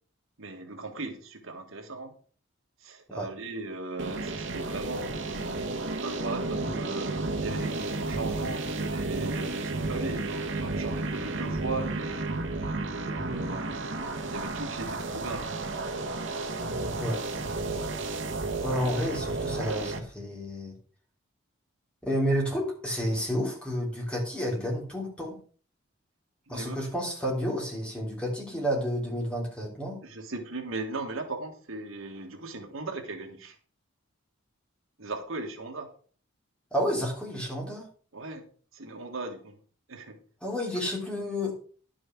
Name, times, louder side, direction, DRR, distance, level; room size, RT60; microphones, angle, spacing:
voice 1, 0.4-2.1 2.8-5.4 6.0-12.2 13.0-13.8 14.3-15.6 26.5-26.8 30.0-33.6 35.0-35.9 38.1-38.4 38.7-39.6 39.9-40.2, right 3 dB, 80° right, 5 dB, 1.9 m, -38 dB
sound 1, 4.0-20.0, right 2 dB, 65° right, 1.5 m, -32 dB
voice 2, 18.6-20.7 22.0-25.4 26.5-30.0 36.7-37.9 40.4-41.5, equal, 5° left, -2 dB, 3.3 m, -30 dB
11.0 x 6.2 x 6.0 m, 0.42 s
head